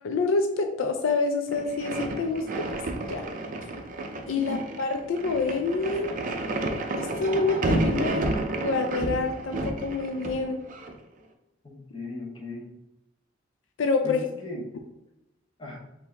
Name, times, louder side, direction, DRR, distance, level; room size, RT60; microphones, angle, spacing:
voice 1, 0.0-2.8 3.1-3.3 4.3-6.2 7.0-8.3 8.6-10.6 13.8-14.3, left 3 dB, 80° left, 5 dB, 0.4 m, -27 dB
sound 1, 1.5-10.9, right 2 dB, 45° right, 0.5 m, -31 dB
voice 2, 11.6-12.7 14.0-14.7 15.6-15.8, left 2 dB, 25° left, -2 dB, 0.9 m, -37 dB
4.4 x 2.7 x 3.4 m, 0.93 s
head